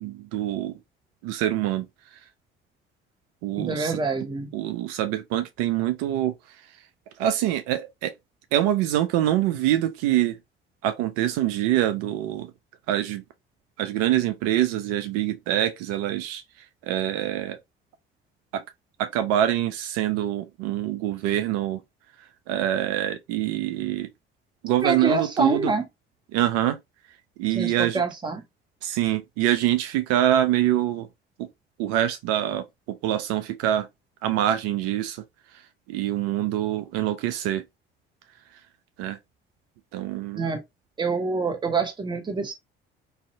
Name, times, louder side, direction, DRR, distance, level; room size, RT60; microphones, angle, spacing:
voice 1, 0.0-0.8 1.2-2.2 3.4-4.0 4.5-6.3 7.2-8.1 8.5-10.4 10.8-12.5 12.9-13.2 13.8-17.6 18.5-18.6 19.0-21.8 22.5-24.1 24.6-25.7 26.3-26.8 27.4-28.0 28.8-31.1 31.4-31.5 31.8-33.9 34.2-35.2 35.9-37.6 39.0-39.2 39.9-40.5, right 12 dB, 55° right, 0.4 m, -25 dB
voice 2, 3.6-4.5 24.8-25.8 27.5-28.4 40.3-40.6 41.0-42.6, right 4 dB, 15° right, 0.7 m, -26 dB
2.5 x 2.0 x 2.6 m
figure-of-eight pair, 50°, 29 cm